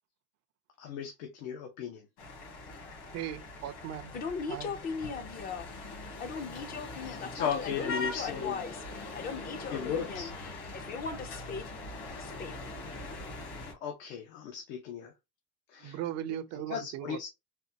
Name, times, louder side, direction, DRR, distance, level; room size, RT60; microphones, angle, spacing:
voice 1, 0.8-2.0 7.0-8.6 9.7-10.3 13.8-15.1 15.7-16.0 16.7-17.3, left 7 dB, 85° left, 1.1 m, -36 dB
sound 1, 2.2-13.7, left 2 dB, 65° left, 2.0 m, -42 dB
voice 2, 3.1-4.2 4.5-4.7 15.8-17.3, right 11 dB, 40° right, 0.4 m, -38 dB
voice 3, 4.1-5.7 6.2-11.6 12.2-12.7, left 5 dB, 25° left, 0.4 m, -39 dB
4.2 x 2.3 x 2.7 m
cardioid pair, 160°, 41 cm